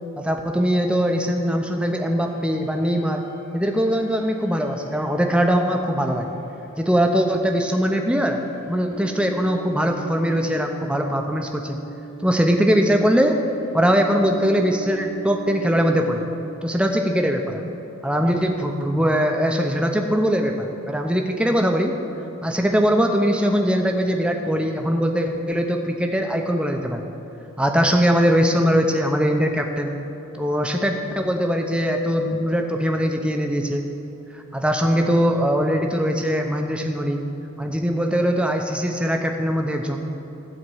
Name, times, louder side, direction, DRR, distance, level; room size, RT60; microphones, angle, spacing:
voice 1, 0.2-3.2 3.5-6.3 6.8-8.4 8.7-11.8 12.2-13.4 13.7-16.3 16.6-17.6 18.0-21.9 22.4-27.1 27.6-29.9 30.3-33.9 34.3-37.2 37.6-40.0, equal, 5° right, 3 dB, 0.6 m, -21 dB
sound 1, 2.2-16.7, right 3 dB, 55° left, 1.5 m, -42 dB
12.5 x 4.3 x 7.8 m, 2.9 s
head